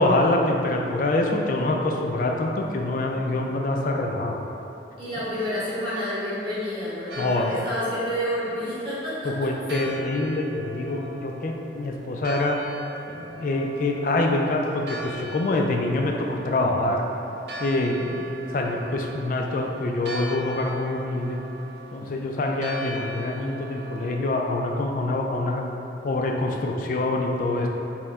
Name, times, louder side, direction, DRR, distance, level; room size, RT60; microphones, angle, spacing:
voice 1, 0.0-4.4 7.2-7.5 9.4-12.6 13.1-17.0 17.6-21.4 21.9-25.7 26.0-27.7, left 2 dB, 50° left, 1 dB, 0.3 m, -25 dB
voice 2, 5.0-9.5, equal, 30° right, -11 dB, 1.2 m, -29 dB
Church bell, 7.1-24.2, right 1 dB, 65° right, 0.4 m, -40 dB
4.3 x 2.2 x 3.5 m, 2.9 s
head